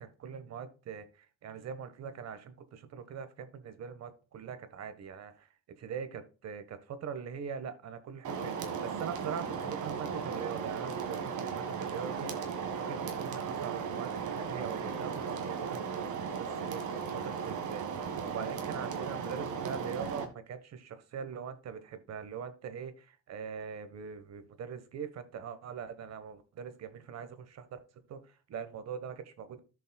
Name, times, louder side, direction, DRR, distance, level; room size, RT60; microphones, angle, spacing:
voice 1, 0.0-5.5 5.8-27.8 28.1-29.6, right 7 dB, 55° right, 10 dB, 1.4 m, -42 dB
sound 1, 8.2-20.3, right 6 dB, 70° right, 1.8 m, -36 dB
14.5 x 5.4 x 2.3 m, 0.34 s
cardioid pair, 95°, 31 cm